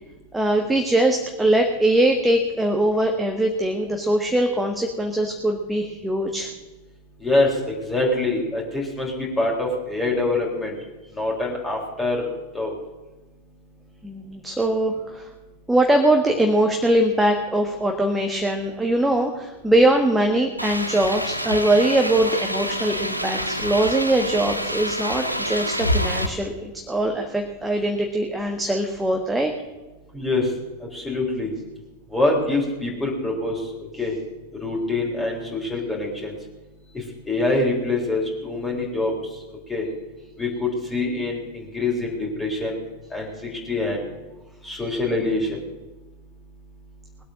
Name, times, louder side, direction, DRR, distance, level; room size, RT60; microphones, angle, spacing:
voice 1, 0.3-6.5 14.0-15.3 15.7-29.5, right 1 dB, 5° right, 3 dB, 1.4 m, -21 dB
voice 2, 7.2-10.7 11.2-12.3 12.5-12.7 30.1-30.4 30.9-31.5 32.1-33.6 34.0-34.1 34.6-36.3 37.3-39.1 39.7-39.8 40.4-42.8 43.1-44.0 44.6-45.5, left 2 dB, 10° left, -2 dB, 4.0 m, -24 dB
sound 1, 20.6-26.3, equal, 90° right, 1.0 m, -27 dB
20.0 x 8.4 x 6.5 m, 1.1 s
figure-of-eight pair, 90°, 0 cm